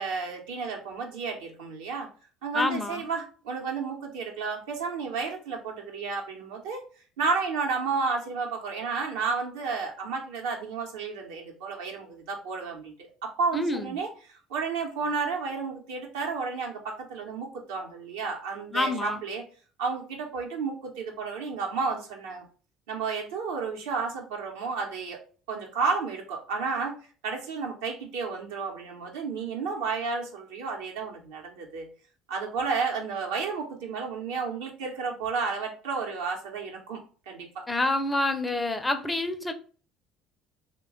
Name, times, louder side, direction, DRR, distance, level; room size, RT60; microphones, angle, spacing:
voice 1, 0.0-2.1 2.4-6.8 7.2-14.1 14.5-19.4 19.8-22.4 22.9-25.2 25.5-26.9 27.2-31.9 32.3-37.6, right 4 dB, 80° right, 0.8 m, -32 dB
voice 2, 2.5-3.0 13.5-14.0 18.7-19.2 37.7-39.5, left 2 dB, 15° left, 0.5 m, -27 dB
3.1 x 2.2 x 3.6 m
hypercardioid pair, 65°, 0 cm